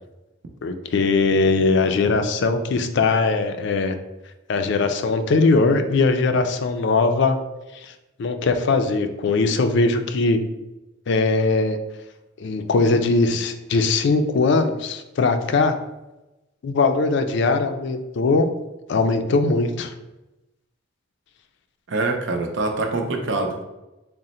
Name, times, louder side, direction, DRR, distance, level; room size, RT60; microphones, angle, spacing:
voice 1, 0.6-4.0 4.5-7.4 7.8-7.9 8.2-10.4 11.1-11.8 12.4-15.8 16.6-18.5 18.9-19.9, left 3 dB, 60° left, 8 dB, 0.4 m, -20 dB
voice 2, 21.9-23.6, right 3 dB, 65° right, 3 dB, 0.6 m, -24 dB
3.7 x 2.1 x 4.1 m, 1.0 s
head